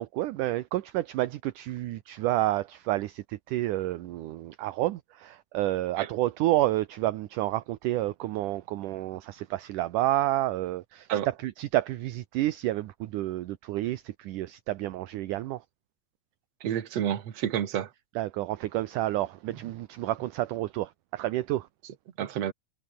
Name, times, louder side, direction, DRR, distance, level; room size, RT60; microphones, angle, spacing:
voice 1, 0.0-15.6 18.2-21.7, right 15 dB, 70° right, 2.2 m, -30 dB
voice 2, 16.6-17.9 22.2-22.5, right 10 dB, 50° right, 2.5 m, -29 dB
omnidirectional pair, 4.3 m